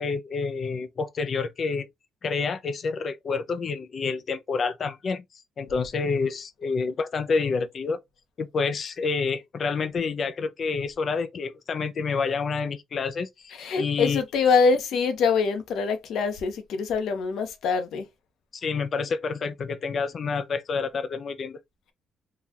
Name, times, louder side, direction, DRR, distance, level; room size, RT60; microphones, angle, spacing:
voice 1, 0.0-1.9 2.2-5.2 5.6-8.0 8.4-14.2 18.5-21.6, left 4 dB, 50° left, 0.6 m, -28 dB
voice 2, 13.5-18.0, left 5 dB, 75° left, 1.0 m, -24 dB
3.9 x 2.5 x 2.9 m
cardioid pair, 90°, 0 cm